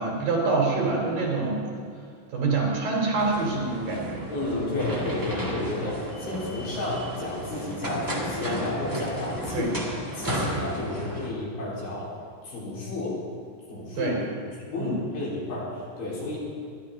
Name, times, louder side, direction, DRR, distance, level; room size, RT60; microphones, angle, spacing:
voice 1, 0.0-1.6 2.3-4.3 9.5-9.7 14.0-14.2 14.8-15.0, right 3 dB, 75° right, -2 dB, 4.8 m, -26 dB
sound 1, 3.2-11.3, equal, 20° right, 0.5 m, -33 dB
voice 2, 4.3-9.7 10.1-12.1 12.4-13.2 13.7-14.1 14.6-16.4, left 2 dB, 80° left, -7 dB, 5.7 m, -32 dB
21.5 x 12.0 x 3.7 m, 2.1 s
omnidirectional pair, 4.0 m